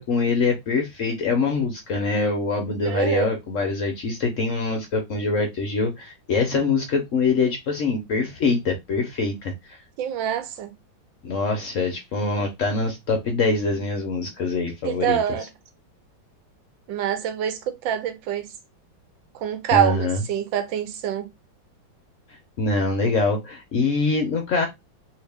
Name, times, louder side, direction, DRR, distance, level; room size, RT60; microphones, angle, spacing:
voice 1, 0.0-9.5 11.2-15.2 19.7-20.2 22.6-24.6, left 3 dB, 65° left, 0.7 m, -24 dB
voice 2, 2.8-3.3 10.0-10.7 14.8-15.5 16.9-18.5 19.3-21.3, right 10 dB, 80° right, 1.4 m, -25 dB
2.8 x 2.8 x 3.3 m
omnidirectional pair, 2.1 m